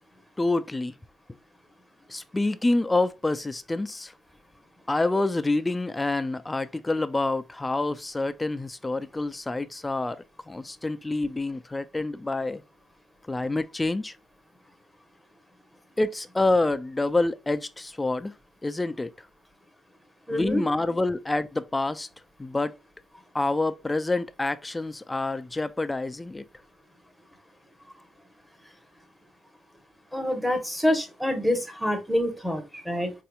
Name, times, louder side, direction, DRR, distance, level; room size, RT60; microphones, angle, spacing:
voice 1, 0.4-0.9 2.1-4.1 4.9-12.6 13.3-14.1 16.0-18.3 18.6-19.1 20.3-22.1 22.4-22.8 23.3-26.4, left 2 dB, 15° left, 0.3 m, -27 dB
voice 2, 20.3-20.6 30.1-33.1, left 1 dB, ahead, 0.9 m, -26 dB
4.0 x 2.8 x 2.2 m
cardioid pair, 90°, 0 cm